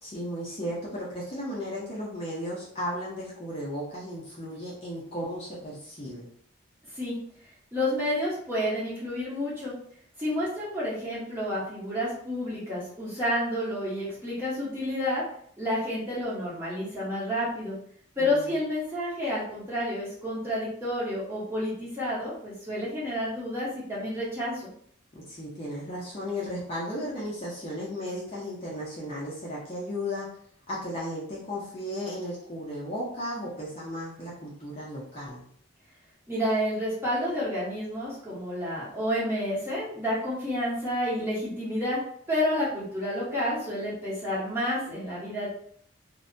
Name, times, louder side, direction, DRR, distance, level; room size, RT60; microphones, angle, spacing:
voice 1, 0.0-6.3 18.2-18.6 25.1-30.3 30.7-35.4, equal, 30° left, -6 dB, 0.6 m, -35 dB
voice 2, 7.7-9.7 10.2-15.2 15.6-17.7 18.2-24.6 36.3-42.0 42.3-45.5, left 1 dB, 10° right, -9 dB, 0.9 m, -30 dB
2.6 x 2.1 x 2.6 m, 0.62 s
head